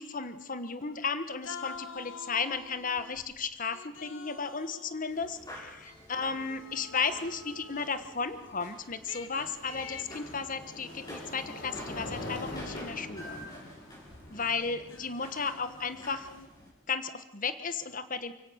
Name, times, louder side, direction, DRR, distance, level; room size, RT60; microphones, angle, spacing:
voice 1, 0.0-13.4 14.3-16.3 16.9-18.3, left 5 dB, 45° left, 11 dB, 1.4 m, -34 dB
sound 1, 0.8-1.1 1.4-3.2 3.7-5.7 6.2-8.1 9.1-11.6 12.0-13.5 14.1-14.2 14.9-16.5, left 5 dB, 80° left, 1.6 m, -48 dB
sound 2, 2.6-2.7 3.0-3.4 5.2-5.3 8.3-16.4, left 1 dB, 60° left, 5.4 m, -45 dB
sound 3, 5.1-16.7, left 1 dB, 20° left, 7.0 m, -49 dB
29.0 x 17.0 x 6.5 m, 0.91 s
head